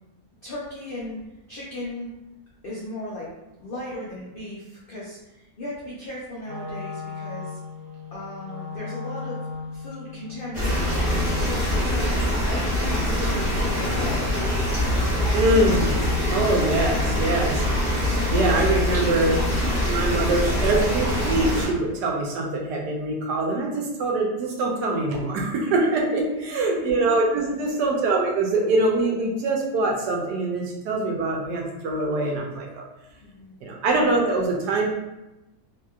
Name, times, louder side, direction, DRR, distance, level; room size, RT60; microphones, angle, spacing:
voice 1, 0.4-1.2 1.5-2.1 2.6-3.3 3.6-7.6 8.1-9.4 9.7-12.2 12.5-14.4 26.2-26.8 27.3-27.6 33.2-33.6, left 1 dB, 75° left, -6 dB, 0.5 m, -37 dB
Wind instrument woodwind instrument, 6.4-14.6, left 4 dB, 60° right, 0.8 m, -37 dB
sound 1, 10.5-21.7, left 1 dB, 30° right, 1.2 m, -24 dB
voice 2, 15.3-17.6 18.3-19.4 19.8-32.8 33.6-34.9, right 2 dB, 85° right, -1 dB, 1.2 m, -24 dB
2.9 x 2.7 x 2.4 m, 0.97 s
omnidirectional pair, 1.7 m